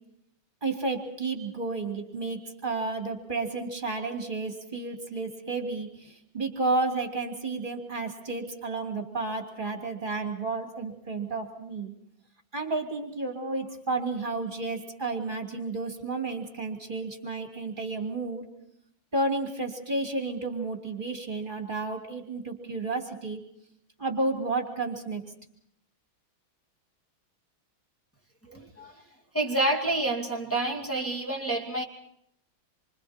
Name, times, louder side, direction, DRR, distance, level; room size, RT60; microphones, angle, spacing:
voice 1, 0.6-11.9 12.5-18.4 19.1-23.4 24.0-25.2, right 3 dB, 25° right, 3 dB, 2.9 m, -31 dB
voice 2, 28.5-29.0 29.3-31.8, right 2 dB, 5° left, 0 dB, 2.3 m, -28 dB
27.5 x 25.0 x 4.4 m, 0.72 s
omnidirectional pair, 2.3 m